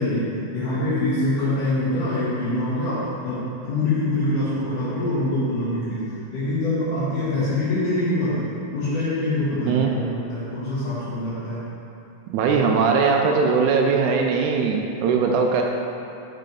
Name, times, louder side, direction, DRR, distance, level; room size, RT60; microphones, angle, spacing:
voice 1, 0.0-11.6, left 1 dB, 75° left, -12 dB, 3.0 m, -25 dB
voice 2, 12.3-15.6, right 5 dB, 80° right, 1 dB, 1.9 m, -20 dB
6.3 x 5.5 x 5.3 m, 2.9 s
omnidirectional pair, 3.7 m